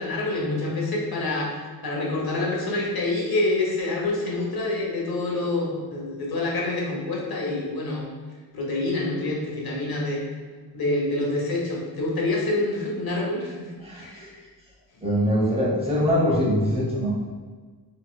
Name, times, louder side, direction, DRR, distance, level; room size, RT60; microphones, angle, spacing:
voice 1, 0.0-1.5 1.8-8.0 8.5-10.2 10.7-13.7 13.9-14.3, left 2 dB, 70° left, -3 dB, 0.9 m, -27 dB
voice 2, 13.8-14.3 15.0-17.3, equal, 15° right, -6 dB, 0.9 m, -23 dB
4.0 x 3.0 x 2.2 m, 1.5 s
wide cardioid pair, 95°, 38 cm